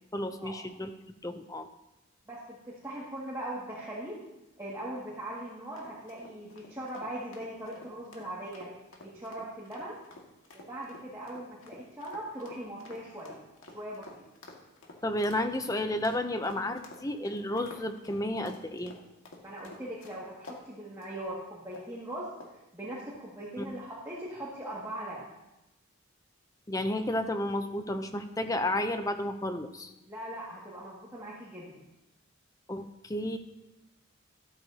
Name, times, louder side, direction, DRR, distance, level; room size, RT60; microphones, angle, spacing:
voice 1, 0.1-0.9 1.2-1.7 15.0-19.0 23.6-23.7 26.7-29.9 32.7-33.4, left 1 dB, 15° left, 8 dB, 0.6 m, -32 dB
voice 2, 2.3-4.2 4.6-8.7 9.0-10.0 10.5-13.4 13.7-14.2 19.4-21.4 21.6-22.3 22.7-25.3 30.1-31.9, right 1 dB, 15° right, -7 dB, 2.1 m, -40 dB
sound 1, 5.8-20.6 21.0-21.2 21.7-22.0 22.4-22.7, left 2 dB, 80° left, 1.9 m, -50 dB
13.5 x 13.0 x 2.9 m, 0.95 s
head